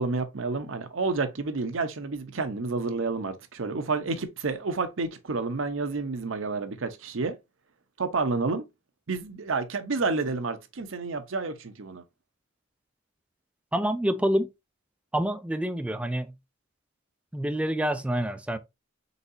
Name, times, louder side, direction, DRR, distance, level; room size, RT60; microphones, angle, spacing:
voice 1, 0.0-7.4 8.0-8.6 9.1-12.0, right 3 dB, 75° right, 0.7 m, -30 dB
voice 2, 13.7-14.5 15.1-16.3 17.3-18.6, right 1 dB, 5° right, 0.3 m, -27 dB
4.1 x 3.9 x 2.6 m
head